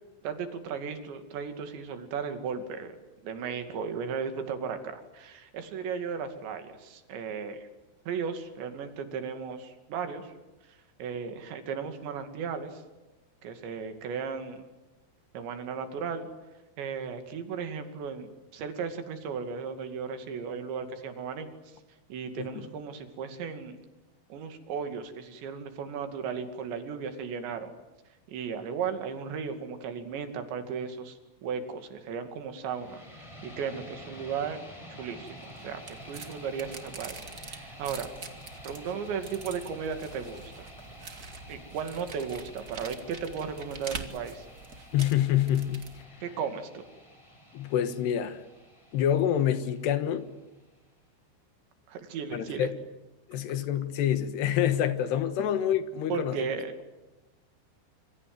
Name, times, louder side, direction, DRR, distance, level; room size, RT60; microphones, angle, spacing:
voice 1, 0.2-2.9 3.2-7.7 8.1-10.3 11.0-12.8 13.4-14.6 15.3-16.3 16.8-18.3 18.5-21.5 22.1-23.8 24.3-27.7 28.3-34.6 35.0-38.1 38.6-40.7 41.5-44.5 46.2-46.8 51.9-52.7 56.1-56.7, right 6 dB, 70° right, 4.5 m, -35 dB
sound 1, 32.6-50.6, equal, 5° left, 4.8 m, -49 dB
sound 2, 35.3-46.0, right 4 dB, 45° right, 1.2 m, -45 dB
voice 2, 44.9-45.9 47.5-48.4 48.9-50.3 52.3-52.8 53.3-56.4, left 10 dB, 70° left, 3.3 m, -27 dB
26.0 x 25.5 x 7.9 m
omnidirectional pair, 5.4 m